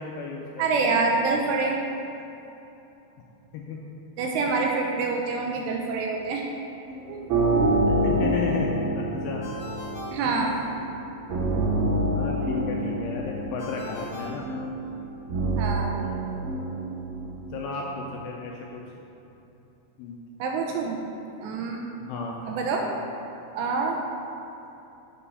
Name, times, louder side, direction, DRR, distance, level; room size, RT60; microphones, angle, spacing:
voice 1, 0.0-0.9 3.5-3.8 4.5-4.6 7.9-9.5 10.2-10.3 12.0-14.5 16.0-16.3 17.5-18.8 20.0-20.2 22.0-22.5, left 4 dB, 85° left, -1 dB, 2.5 m, -34 dB
voice 2, 0.6-1.8 4.2-6.5 7.1-7.2 10.1-10.6 15.6-16.0 20.4-21.0 21.4-21.9 22.5-22.8 23.5-24.0, right 4 dB, 80° right, 1 dB, 2.6 m, -26 dB
sound 1, 6.9-18.0, right 1 dB, 65° right, 2.8 m, -27 dB
Ringtone, 9.4-11.1 13.6-15.3, left 2 dB, 40° left, 2.3 m, -42 dB
7.6 x 6.8 x 5.6 m, 2.9 s
omnidirectional pair, 5.4 m